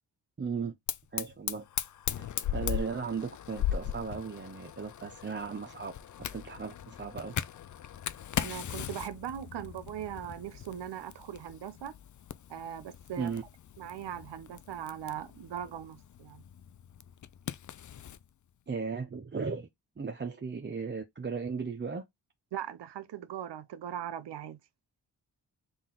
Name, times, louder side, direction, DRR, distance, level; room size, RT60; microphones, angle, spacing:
voice 1, 0.4-0.7 1.1-1.6 2.2-5.9 6.3-7.3 13.2-13.4 18.7-19.7 20.0-22.0, right 5 dB, 25° right, 0.6 m, -36 dB
Fire, 0.9-18.2, left 10 dB, 45° left, 0.4 m, -39 dB
voice 2, 8.4-12.0 12.5-13.3 13.8-16.4 22.5-24.6, right 10 dB, 75° right, 0.6 m, -40 dB
3.9 x 2.5 x 3.7 m
cardioid pair, 50°, 42 cm